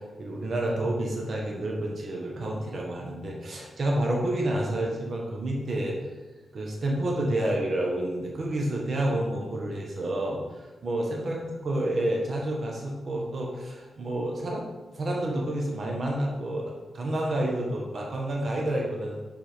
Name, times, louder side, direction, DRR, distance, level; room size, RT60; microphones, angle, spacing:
voice 1, 0.0-6.0 6.5-10.4 10.8-11.4 11.6-14.7 14.9-19.3, right 1 dB, 50° right, -1 dB, 1.3 m, -29 dB
7.7 x 3.7 x 5.1 m, 1.2 s
cardioid pair, 110°, 0 cm